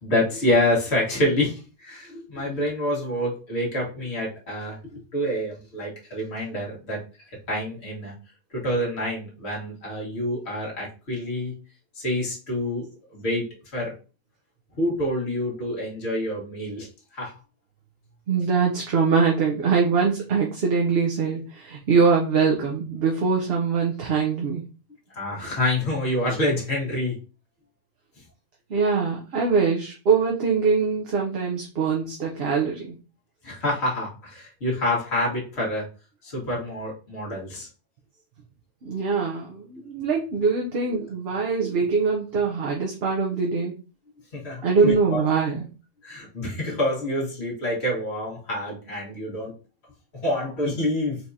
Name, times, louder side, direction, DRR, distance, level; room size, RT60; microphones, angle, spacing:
voice 1, 0.0-8.1 8.5-11.5 12.0-13.4 13.7-13.9 14.8-16.9 17.1-17.3 25.1-27.2 33.4-35.9 36.2-37.7 41.0-41.1 41.7-41.8 44.3-45.3 46.0-49.5 50.2-51.2, left 1 dB, 70° left, -4 dB, 2.0 m, -27 dB
voice 2, 18.3-24.6 28.7-33.0 38.8-43.7 44.6-45.7, right 5 dB, 65° right, -1 dB, 1.0 m, -23 dB
4.6 x 3.6 x 2.7 m, 0.33 s
omnidirectional pair, 1.2 m